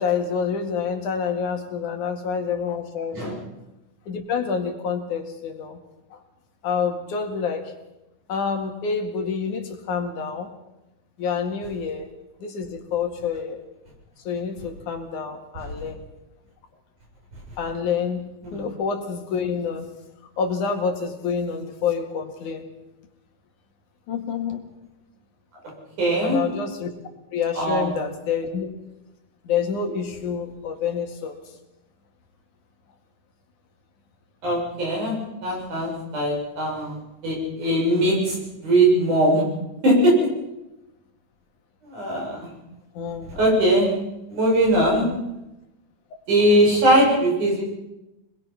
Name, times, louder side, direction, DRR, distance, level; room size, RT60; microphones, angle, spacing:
voice 1, 0.0-3.4 4.1-5.8 6.1-6.2 6.6-7.7 8.3-10.5 11.2-12.1 12.4-13.6 14.3-16.0 17.6-19.9 20.4-22.7 24.1-24.7 26.2-26.9 27.3-28.7 29.4-31.4 43.0-43.4, left 6 dB, 75° left, 4 dB, 3.5 m, -27 dB
voice 2, 26.0-26.4 27.6-27.9 34.4-35.2 35.4-37.0 37.2-38.4 38.6-39.4 39.8-40.1 41.8-42.5 43.4-43.9 44.3-45.1 46.3-47.6, right 1 dB, 70° right, -3 dB, 8.7 m, -20 dB
25.5 x 21.0 x 5.9 m, 0.96 s
omnidirectional pair, 3.6 m